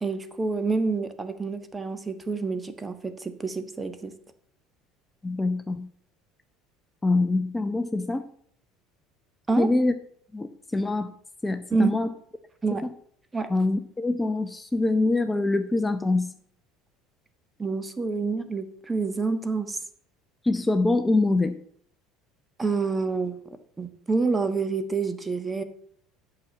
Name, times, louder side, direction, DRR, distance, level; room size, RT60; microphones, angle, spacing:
voice 1, 0.0-4.1 9.5-9.7 11.7-12.0 12.6-12.8 13.3-13.5 17.6-19.8 22.6-23.4 23.8-25.6, right 4 dB, 20° right, 10 dB, 1.3 m, -27 dB
voice 2, 5.2-5.9 7.0-8.2 9.6-9.9 10.3-11.1 11.4-12.1 12.8-12.9 13.5-16.4 20.4-21.6, left 2 dB, 15° left, 9 dB, 0.8 m, -24 dB
8.5 x 6.2 x 7.1 m, 0.62 s
hypercardioid pair, 75°, 0 cm